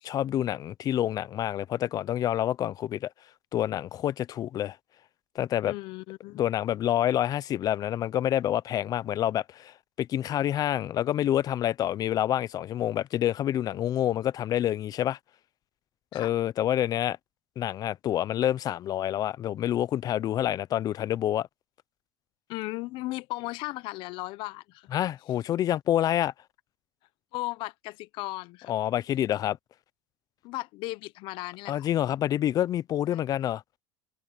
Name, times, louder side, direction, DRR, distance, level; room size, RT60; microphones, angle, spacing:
voice 1, 0.0-3.1 3.5-4.8 5.3-5.7 6.4-15.2 16.1-17.2 17.6-21.5 24.9-26.3 28.7-29.6 31.7-33.6, left 11 dB, 40° left, 0.8 m, -27 dB
voice 2, 5.7-6.4 16.1-16.3 22.5-24.9 27.3-28.7 30.4-31.9 33.1-33.2, left 20 dB, 60° left, 1.1 m, -36 dB
supercardioid pair, 100°, 9 cm